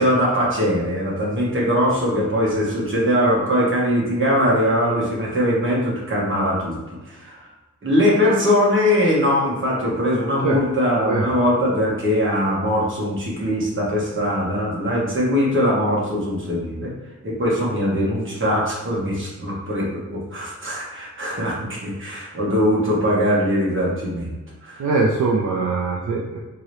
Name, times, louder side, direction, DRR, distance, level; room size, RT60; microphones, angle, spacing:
voice 1, 0.0-6.8 7.1-7.5 7.8-16.9 17.2-24.3 24.6-24.9, equal, 40° right, -5 dB, 1.3 m, -21 dB
voice 2, 24.8-26.4, right 3 dB, 70° right, -3 dB, 0.5 m, -21 dB
3.7 x 2.9 x 3.1 m, 1.2 s
wide cardioid pair, 130°, 31 cm